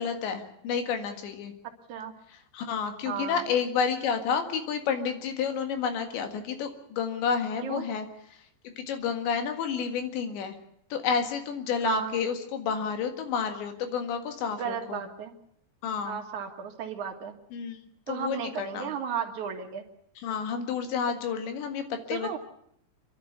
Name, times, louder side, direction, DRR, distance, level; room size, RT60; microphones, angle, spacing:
voice 1, 0.0-1.5 2.3-8.1 8.6-10.6 10.9-15.1 15.8-16.2 17.5-17.8 18.1-18.9 20.2-22.4, left 6 dB, 80° left, 6 dB, 4.1 m, -30 dB
voice 2, 3.1-3.4 7.6-7.9 11.8-12.1 14.6-15.3 16.0-17.4 18.1-19.8 22.1-22.4, right 7 dB, 55° right, 4 dB, 2.5 m, -34 dB
28.5 x 12.0 x 8.1 m, 0.70 s
omnidirectional pair, 5.1 m